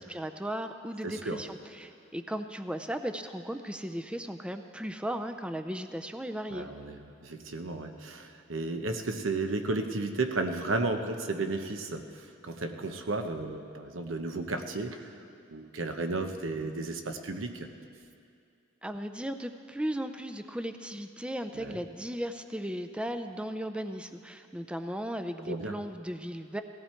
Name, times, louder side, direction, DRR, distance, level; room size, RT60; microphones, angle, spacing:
voice 1, 0.0-6.7 18.8-26.6, equal, 5° right, 7 dB, 0.4 m, -36 dB
voice 2, 1.0-1.4 6.5-15.1 15.5-17.7 21.5-21.8 25.5-25.7, right 3 dB, 85° right, 6 dB, 1.0 m, -33 dB
18.0 x 15.0 x 4.5 m, 2.4 s
head